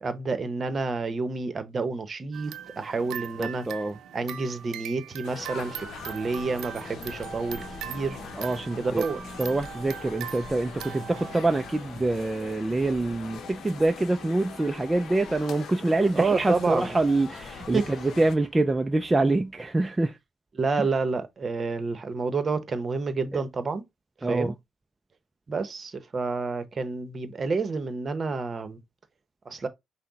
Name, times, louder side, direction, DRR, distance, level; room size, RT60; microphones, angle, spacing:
voice 1, 0.0-3.7 4.1-8.2 8.8-9.2 16.1-17.0 17.7-17.8 20.6-23.8 24.3-24.5 25.5-28.8 29.4-29.7, right 4 dB, 40° right, 0.8 m, -29 dB
sound 1, 2.3-12.3, right 9 dB, 80° right, 0.6 m, -41 dB
voice 2, 3.4-4.0 8.4-9.0 9.4-20.2 20.8-20.9 23.3-23.4 24.2-24.5, right 2 dB, 15° right, 0.4 m, -25 dB
sound 2, 5.2-18.3, left 6 dB, 70° left, 0.7 m, -43 dB
Musical instrument, 6.0-19.7, equal, 20° left, 2.1 m, -49 dB
5.8 x 2.1 x 4.0 m
cardioid pair, 90°, 0 cm